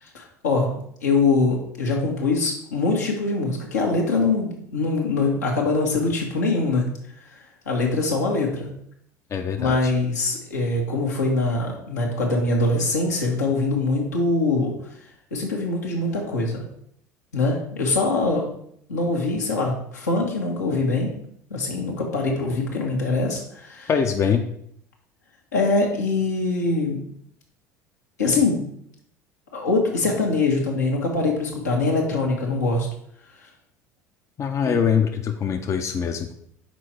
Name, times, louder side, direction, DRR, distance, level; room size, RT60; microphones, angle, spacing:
voice 1, 0.1-0.7 1.0-6.8 7.3-7.4 7.6-8.7 9.6-14.7 15.3-16.6 17.3-18.5 18.9-21.1 21.5-23.9 25.5-27.0 28.2-28.7 29.5-32.9 34.7-34.8, left 3 dB, 80° left, -1 dB, 1.4 m, -23 dB
voice 2, 9.3-9.9 23.9-24.4 34.4-36.3, left 7 dB, 35° left, 5 dB, 0.6 m, -23 dB
6.1 x 4.5 x 4.3 m, 0.68 s
figure-of-eight pair, 65°, 9 cm